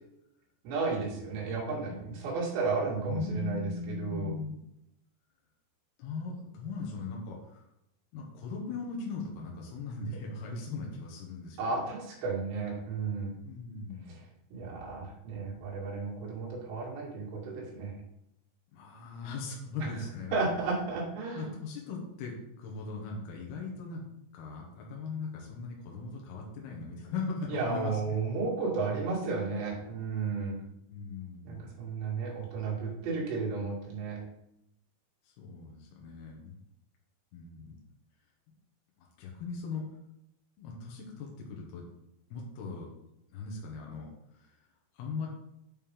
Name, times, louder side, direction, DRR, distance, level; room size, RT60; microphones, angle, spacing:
voice 1, 0.6-4.3 11.6-13.4 14.1-14.2 14.5-18.0 19.8-19.9 20.3-21.6 27.5-30.6 31.4-34.2, right 4 dB, 75° right, -5 dB, 4.4 m, -33 dB
voice 2, 2.8-4.5 6.0-7.6 8.1-11.6 13.4-14.1 18.7-20.4 21.4-24.0 24.3-28.1 30.9-31.7 35.2-36.6 37.3-37.8 39.0-39.8 40.6-41.9 42.3-42.9 43.3-44.6 44.9-45.3, left 4 dB, 70° left, -1 dB, 3.1 m, -39 dB
8.9 x 5.2 x 3.8 m, 0.83 s
omnidirectional pair, 5.1 m